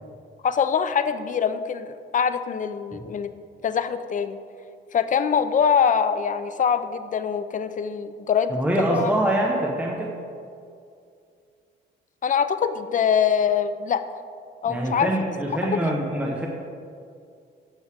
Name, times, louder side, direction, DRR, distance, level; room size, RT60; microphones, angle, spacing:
voice 1, 0.4-3.3 3.6-4.4 4.9-9.1 12.2-14.0 14.6-15.1 15.7-15.9, left 7 dB, 40° left, 11 dB, 0.6 m, -23 dB
voice 2, 8.5-10.1 14.7-16.5, right 1 dB, 5° right, -2 dB, 1.1 m, -24 dB
15.5 x 6.2 x 3.5 m, 2.4 s
cardioid pair, 90°, 20 cm